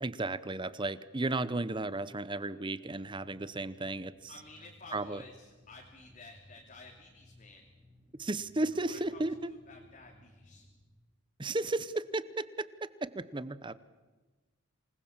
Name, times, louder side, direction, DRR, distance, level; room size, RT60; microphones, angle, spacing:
voice 1, 0.0-4.3 4.9-5.2 8.2-9.5 11.4-13.7, right 2 dB, 20° right, 16 dB, 0.8 m, -34 dB
sound 1, 2.8-10.8, left 1 dB, 5° right, 4.1 m, -61 dB
voice 2, 4.3-7.7 8.9-9.2 9.5-10.6, left 3 dB, 35° left, 1 dB, 2.8 m, -53 dB
27.5 x 20.5 x 7.3 m, 1.3 s
head